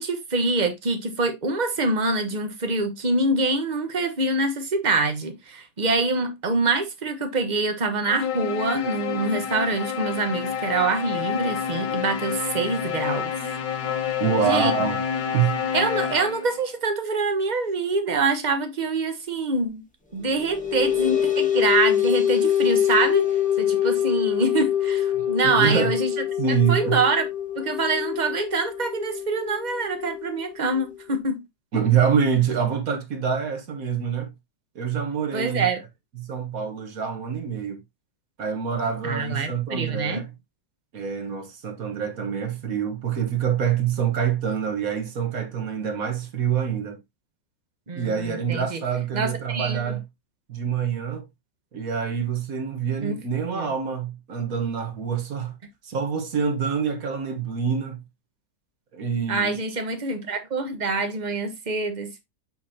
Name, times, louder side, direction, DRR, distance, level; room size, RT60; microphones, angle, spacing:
voice 1, 0.0-13.3 14.4-14.7 15.7-19.8 20.1-23.3 23.6-26.1 26.5-27.3 27.5-31.4 35.3-35.8 39.0-40.2 47.9-48.8 49.1-49.9 53.0-53.7 59.3-62.2, right 3 dB, 30° right, 1.1 m, -25 dB
sound 1, 8.1-16.6, left 7 dB, 75° left, 1.7 m, -28 dB
voice 2, 14.2-15.0 15.3-15.6 25.4-25.9 26.4-27.0 31.7-34.3 34.7-35.6 36.2-37.8 38.4-40.3 40.9-47.0 48.0-50.0 50.5-51.3 51.7-55.5 55.8-58.0 58.9-59.6, right 7 dB, 55° right, 1.6 m, -26 dB
sound 2, 20.2-31.2, left 10 dB, 5° left, 1.4 m, -25 dB
6.7 x 5.9 x 2.8 m
omnidirectional pair, 1.9 m